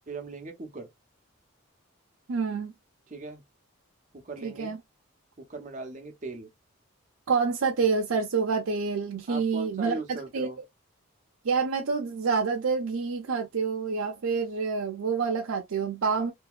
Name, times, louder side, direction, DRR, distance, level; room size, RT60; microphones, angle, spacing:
voice 1, 0.1-0.9 3.1-3.4 4.1-4.8 5.4-6.5 9.3-10.6, right 3 dB, 35° right, 0.7 m, -39 dB
voice 2, 2.3-2.7 4.4-4.8 7.3-10.5 11.4-16.3, right 5 dB, 80° right, 0.5 m, -27 dB
2.8 x 2.7 x 2.3 m
head